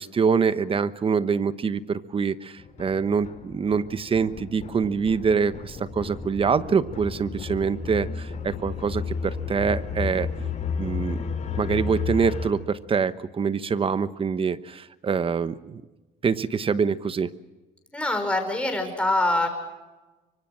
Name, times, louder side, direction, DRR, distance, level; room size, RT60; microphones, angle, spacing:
voice 1, 0.0-10.3 10.8-11.2 11.6-15.8 16.2-17.3, right 6 dB, 30° right, 14 dB, 1.1 m, -25 dB
sound 1, 2.6-12.5, left 5 dB, 45° left, 4.5 m, -33 dB
voice 2, 17.9-19.5, left 2 dB, 5° left, 4 dB, 5.9 m, -24 dB
25.0 x 24.0 x 6.3 m, 1.2 s
cardioid pair, 110°, 17 cm